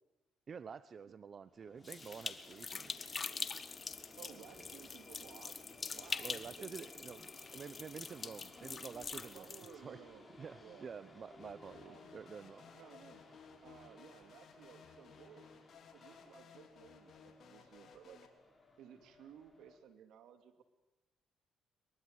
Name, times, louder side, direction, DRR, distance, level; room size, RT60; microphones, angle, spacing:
voice 1, 0.5-3.0 4.6-4.7 6.2-9.5 9.8-10.0 10.4-12.7, right 6 dB, 50° right, 15 dB, 0.9 m, -49 dB
sound 1, 1.4-19.8, left 2 dB, 20° left, 7.3 m, -59 dB
sound 2, 1.9-9.7, left 5 dB, 40° left, 1.7 m, -44 dB
voice 2, 4.2-5.6 5.9-6.9 9.2-10.3 10.6-11.3 11.7-12.2 12.7-13.2 13.6-15.5 15.9-18.3 18.8-20.6, right 8 dB, 80° right, 9 dB, 2.8 m, -57 dB
sound 3, 11.4-18.3, left 6 dB, 60° left, 3.6 m, -59 dB
23.5 x 22.0 x 9.5 m, 0.97 s
cardioid pair, 80°, 0 cm